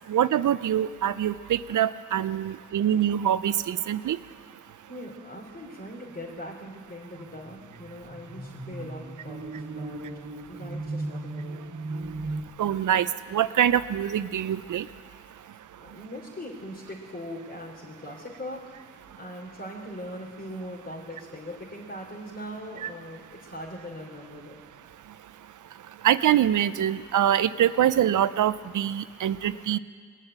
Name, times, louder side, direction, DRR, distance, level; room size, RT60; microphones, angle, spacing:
voice 1, 0.1-4.2 12.6-13.1 13.3-14.9 22.8-22.9 26.0-29.8, right 10 dB, 80° right, 15 dB, 0.5 m, -24 dB
voice 2, 2.4-2.8 4.9-10.0 10.5-11.6 15.4-24.6, equal, 35° left, -5 dB, 3.0 m, -41 dB
sound 1, 7.1-12.4, right 2 dB, 50° right, 1.6 m, -37 dB
20.5 x 7.4 x 8.8 m, 2.1 s
cardioid pair, 40°, 30 cm